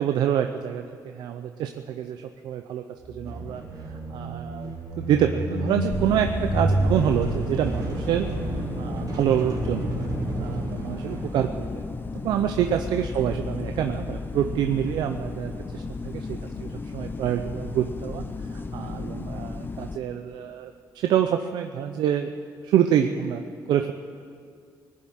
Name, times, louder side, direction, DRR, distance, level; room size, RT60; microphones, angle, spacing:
voice 1, 0.0-3.6 4.1-8.3 8.8-10.0 10.4-11.8 12.2-18.2 18.7-22.3 22.6-23.4 23.7-23.9, right 10 dB, 90° right, 6 dB, 0.6 m, -26 dB
sound 1, 3.0-11.8, right 1 dB, 60° right, 3.3 m, -30 dB
sound 2, 5.9-20.0, left 4 dB, 30° left, 0.8 m, -34 dB
sound 3, 17.4-20.3, left 1 dB, 15° right, 3.2 m, -45 dB
19.5 x 7.5 x 9.3 m, 2.3 s
cardioid pair, 105°, 7 cm